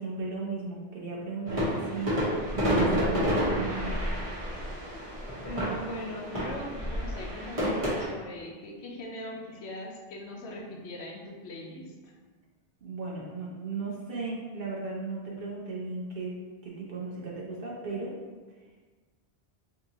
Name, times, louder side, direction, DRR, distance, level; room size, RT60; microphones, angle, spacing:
voice 1, 0.0-4.0 12.8-16.3 16.6-18.1, right 3 dB, 65° right, -5 dB, 0.8 m, -36 dB
sound 1, 1.5-8.1, equal, 35° right, 1.0 m, -29 dB
voice 2, 5.4-12.1, left 1 dB, 85° left, 0 dB, 0.9 m, -40 dB
3.7 x 2.8 x 2.7 m, 1.4 s
omnidirectional pair, 1.1 m